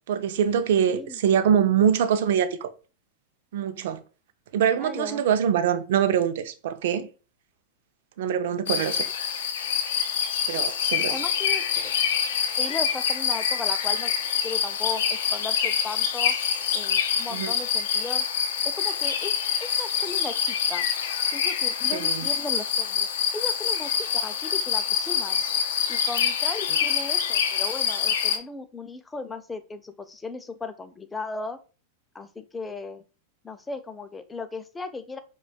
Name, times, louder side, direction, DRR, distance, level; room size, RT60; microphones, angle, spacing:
voice 1, 0.1-2.7 3.5-4.0 4.5-7.1 8.2-9.1 10.5-11.1 17.3-17.5 21.9-22.3, right 8 dB, 70° right, 0.4 m, -24 dB
voice 2, 0.9-1.2 4.8-5.2 11.1-12.0 12.6-14.1 14.4-16.3 16.7-18.3 18.6-20.8 21.3-23.1 23.3-25.4 25.9-31.6 32.1-33.0 33.4-35.2, left 3 dB, 15° left, 0.5 m, -36 dB
sound 1, 8.7-28.4, left 7 dB, 75° left, 0.5 m, -26 dB
4.8 x 2.3 x 2.2 m
hypercardioid pair, 110°, 0 cm